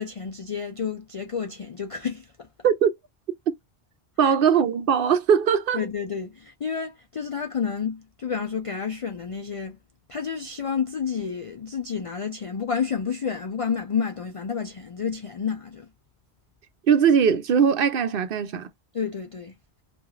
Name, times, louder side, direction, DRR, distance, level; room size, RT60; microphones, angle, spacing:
voice 1, 0.0-2.5 4.2-4.3 5.7-9.8 10.1-15.9 18.9-19.5, left 6 dB, 60° left, 0.3 m, -30 dB
voice 2, 4.2-5.8 16.9-18.7, right 7 dB, 65° right, 0.7 m, -20 dB
3.0 x 2.5 x 2.3 m
omnidirectional pair, 1.1 m